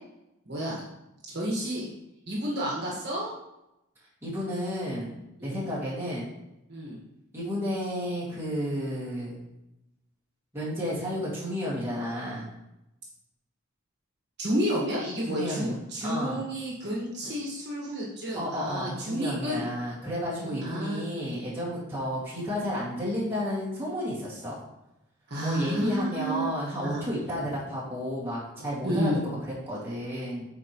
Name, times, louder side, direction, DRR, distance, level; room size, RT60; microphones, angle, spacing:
voice 1, 0.4-0.8 1.3-1.9 2.3-3.3 5.4-5.7 6.7-7.0 14.4-19.7 20.4-21.0 25.3-26.5 26.8-27.0 28.8-29.2, equal, 50° right, -4 dB, 1.6 m, -30 dB
voice 2, 4.2-6.3 7.3-9.4 10.5-12.5 15.3-15.8 16.0-16.4 18.3-24.6 25.4-30.5, equal, 10° right, -8 dB, 2.0 m, -32 dB
8.4 x 4.5 x 3.1 m, 0.88 s
head